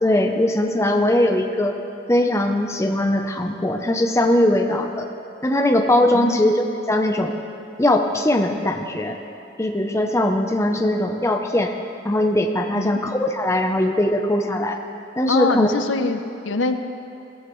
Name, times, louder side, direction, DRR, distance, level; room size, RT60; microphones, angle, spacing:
voice 1, 0.0-1.8 2.1-5.0 5.4-7.4 7.8-9.2 9.6-11.7 12.0-14.8 15.2-15.7, left 1 dB, 15° left, 3 dB, 0.6 m, -20 dB
voice 2, 15.3-16.7, left 3 dB, 80° left, 8 dB, 0.7 m, -24 dB
17.0 x 14.5 x 3.2 m, 3.0 s
head